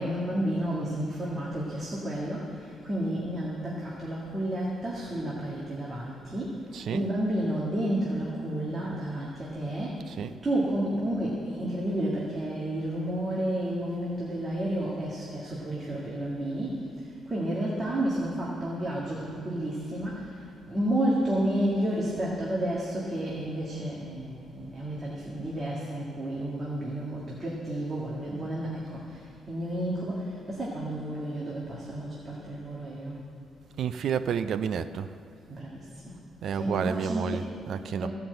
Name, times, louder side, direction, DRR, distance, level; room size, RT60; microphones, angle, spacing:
voice 1, 0.0-6.6 6.9-10.1 10.4-20.3 20.7-33.2 35.5-36.1 36.5-37.5 38.0-38.1, right 1 dB, 20° right, -6 dB, 1.9 m, -31 dB
voice 2, 6.7-7.1 10.1-10.4 33.8-35.1 36.4-38.1, right 7 dB, 55° right, 10 dB, 0.4 m, -30 dB
16.0 x 5.9 x 7.9 m, 2.6 s
cardioid pair, 160°, 0 cm